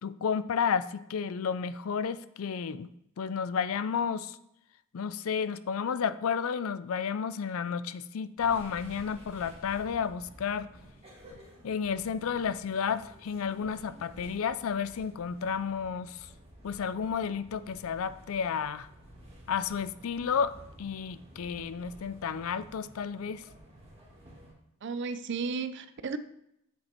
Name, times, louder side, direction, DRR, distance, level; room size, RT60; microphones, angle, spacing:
voice 1, 0.0-2.9 3.2-4.4 4.9-10.7 11.6-16.2 16.6-18.9 19.5-20.5 20.8-23.4, left 6 dB, 85° left, 15 dB, 0.4 m, -31 dB
sound 1, 8.4-24.5, equal, 30° right, 2.1 m, -52 dB
voice 2, 24.8-26.2, right 5 dB, 55° right, 13 dB, 0.5 m, -34 dB
7.4 x 6.3 x 4.4 m, 0.79 s
head